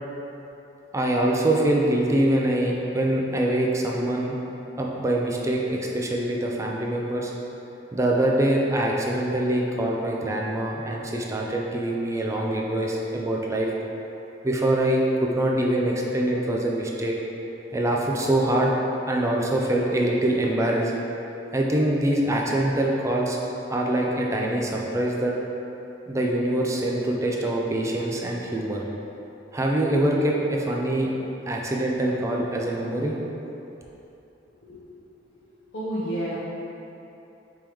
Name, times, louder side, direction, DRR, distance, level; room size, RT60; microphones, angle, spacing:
voice 1, 0.9-4.4 4.8-7.3 7.9-13.7 14.4-17.1 17.7-18.7 19.1-20.9 21.5-23.4 23.7-25.3 26.1-28.8 29.5-31.1 31.5-33.2, right 1 dB, 15° right, -2 dB, 0.4 m, -24 dB
voice 2, 34.5-35.0 35.4-36.4, right 1 dB, 75° left, -10 dB, 0.7 m, -32 dB
4.7 x 3.6 x 3.0 m, 3.0 s
head